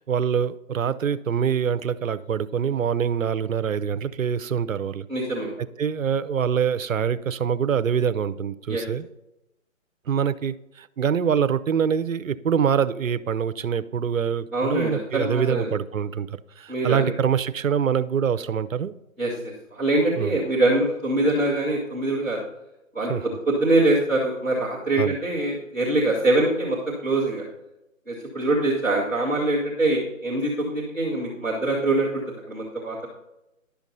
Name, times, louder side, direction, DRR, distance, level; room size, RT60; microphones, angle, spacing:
voice 1, 0.0-5.1 5.6-9.1 10.1-18.9 20.2-20.3 23.0-23.3 25.0-25.1, right 7 dB, 75° right, 16 dB, 0.7 m, -25 dB
voice 2, 5.1-5.5 8.7-8.8 14.5-15.7 16.7-17.1 19.2-22.4 22.9-27.4 28.1-33.1, right 2 dB, ahead, -13 dB, 0.5 m, -24 dB
11.5 x 7.1 x 4.0 m, 0.89 s
figure-of-eight pair, 150°, 40 cm